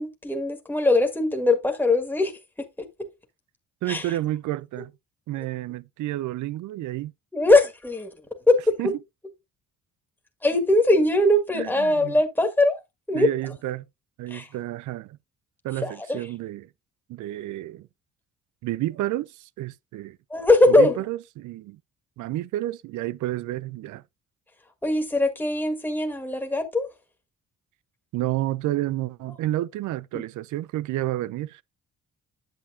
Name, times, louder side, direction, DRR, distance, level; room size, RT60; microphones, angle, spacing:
voice 1, 0.0-2.4 2.8-3.1 3.9-4.1 7.3-8.1 8.5-8.9 10.4-12.8 13.1-13.5 14.3-14.5 15.8-16.3 20.3-21.0 24.8-26.9 30.1-30.2, left 2 dB, 5° left, 1.8 m, -21 dB
voice 2, 3.8-4.9 5.3-7.1 8.8-8.9 11.5-12.2 13.1-13.8 14.2-15.2 15.6-16.7 17.1-17.9 18.6-20.2 20.7-21.8 22.2-24.0 28.1-31.6, right 15 dB, 75° right, 0.5 m, -30 dB
8.8 x 7.4 x 2.6 m
cardioid pair, 90°, 30 cm